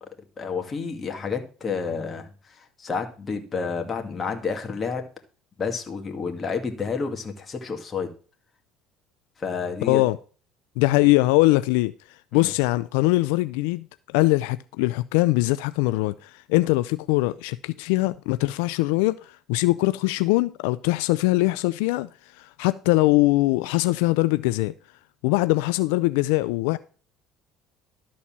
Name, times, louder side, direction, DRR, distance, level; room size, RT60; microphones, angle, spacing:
voice 1, 0.4-5.0 5.6-8.1 9.4-10.0 12.3-12.5, left 5 dB, 30° left, 2.0 m, -30 dB
voice 2, 9.8-10.2 10.8-13.9 14.1-24.7 25.2-26.8, left 20 dB, 85° left, 0.4 m, -22 dB
12.5 x 4.3 x 7.3 m
supercardioid pair, 95°, 0 cm